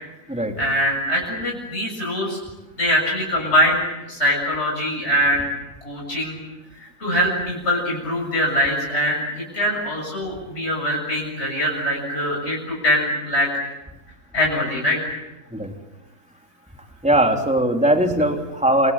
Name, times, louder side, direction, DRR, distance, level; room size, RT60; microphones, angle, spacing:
voice 1, 0.6-2.4 2.8-5.5 5.8-6.4 6.8-9.2 9.5-13.5 14.3-15.2, equal, 50° left, -1 dB, 7.7 m, -22 dB
voice 2, 17.0-18.9, right 1 dB, 5° right, 2 dB, 3.4 m, -19 dB
28.0 x 27.5 x 7.5 m, 1.0 s
omnidirectional pair, 1.5 m